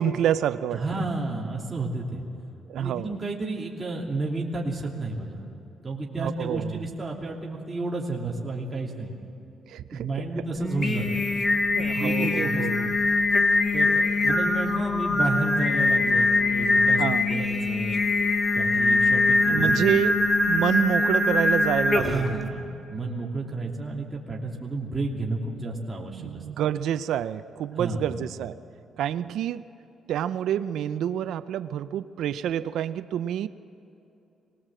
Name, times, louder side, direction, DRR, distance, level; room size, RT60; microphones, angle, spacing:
voice 1, 0.0-0.8 2.7-3.1 6.2-6.8 9.7-10.1 11.8-12.9 14.3-14.4 17.0-17.3 19.5-20.2 20.5-22.5 26.2-28.6 29.0-29.7 30.1-33.5, right 10 dB, 80° right, 13 dB, 0.5 m, -28 dB
voice 2, 0.7-2.2 2.7-5.4 5.8-9.1 9.9-11.2 11.8-12.7 13.7-17.0 17.3-20.1 22.0-26.4 27.8-28.2, right 2 dB, 15° right, -3 dB, 3.0 m, -31 dB
Singing, 10.6-22.3, left 2 dB, 30° left, 1.8 m, -23 dB
23.5 x 19.5 x 7.7 m, 2.9 s
cardioid pair, 90°, 0 cm